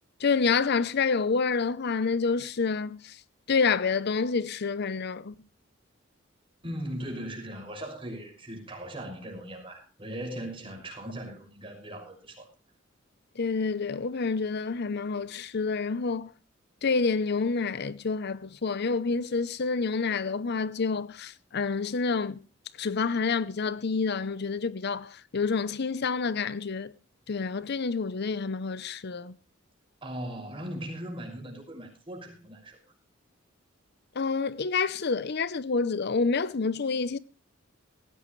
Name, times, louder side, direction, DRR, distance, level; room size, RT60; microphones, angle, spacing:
voice 1, 0.2-3.2 3.5-5.3 13.4-16.3 16.8-22.4 22.8-26.9 27.3-29.3 34.2-37.2, left 4 dB, 55° left, 0.7 m, -28 dB
voice 2, 6.6-12.5 30.0-32.8, right 1 dB, 25° right, 6.1 m, -39 dB
19.0 x 16.0 x 3.2 m
head